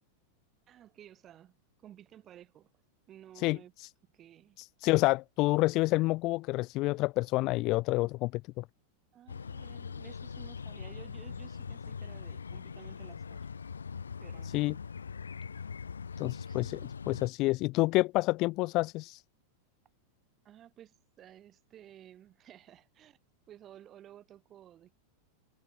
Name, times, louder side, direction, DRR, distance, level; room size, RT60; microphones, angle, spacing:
voice 1, 0.7-2.7 3.1-3.7 4.1-4.6 9.1-13.4 14.2-14.7 16.3-16.9 20.4-23.2 23.5-24.9, right 11 dB, 30° right, 5.5 m, -54 dB
voice 2, 3.4-3.9 4.6-8.6 14.5-14.8 16.2-19.2, left 21 dB, 40° left, 0.6 m, -29 dB
sound 1, 9.3-17.3, left 6 dB, 70° left, 1.5 m, -42 dB
figure-of-eight pair, 90°, 0 cm